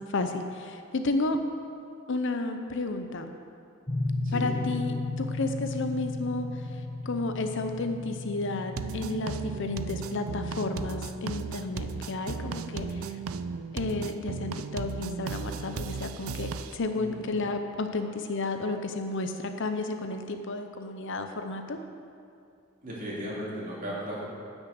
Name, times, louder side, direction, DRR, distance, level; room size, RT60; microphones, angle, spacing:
voice 1, 0.1-1.4 2.1-3.3 4.3-13.2 13.7-21.8, left 2 dB, 60° left, 7 dB, 0.7 m, -32 dB
sound 1, 3.9-13.6, left 2 dB, 25° left, 1.1 m, -36 dB
voice 2, 4.2-4.6 16.9-17.2 22.8-24.2, equal, 40° right, -6 dB, 2.9 m, -36 dB
sound 2, 8.8-16.8, right 5 dB, 85° right, 0.4 m, -35 dB
9.9 x 6.3 x 7.9 m, 2.4 s
head